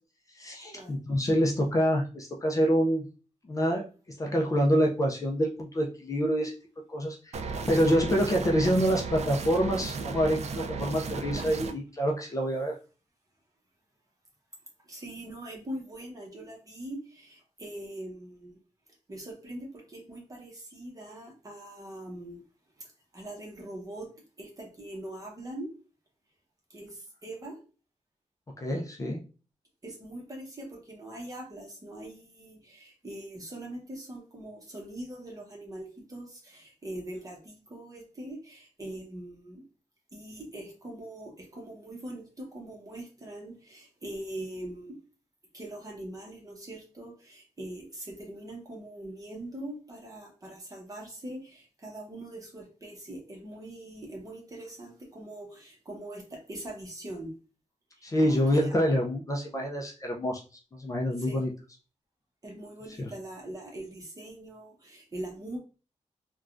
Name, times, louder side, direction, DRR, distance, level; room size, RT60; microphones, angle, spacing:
voice 1, 0.3-3.0 3.4-6.5 6.9-7.4 7.7-12.8 28.6-29.2 58.0-60.4 60.7-61.5 63.0-63.1, equal, 25° left, 0 dB, 0.4 m, -26 dB
sound 1, 7.3-11.7, right 4 dB, 60° right, 0.4 m, -35 dB
voice 2, 14.8-18.6 19.1-22.4 22.8-25.7 26.7-27.6 29.8-39.6 40.1-45.0 45.5-57.3 57.9-58.8 61.2-61.4 62.4-65.6, right 1 dB, 30° right, 0 dB, 0.9 m, -42 dB
3.4 x 2.2 x 2.4 m, 0.34 s
wide cardioid pair, 135°, 13 cm